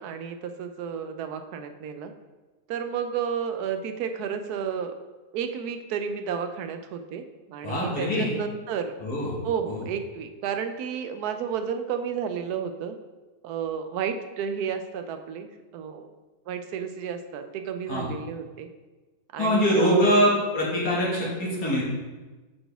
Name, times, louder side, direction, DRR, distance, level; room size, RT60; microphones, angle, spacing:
voice 1, 0.0-2.1 2.7-4.9 5.3-9.0 9.4-13.0 13.4-16.1 16.5-18.7 19.3-20.3, right 7 dB, 85° right, 7 dB, 1.1 m, -32 dB
voice 2, 7.6-8.3 9.0-9.3 9.7-9.8 17.9-18.1 19.4-21.8, equal, 85° left, -6 dB, 2.4 m, -23 dB
8.8 x 4.1 x 3.4 m, 1.2 s
omnidirectional pair, 1.6 m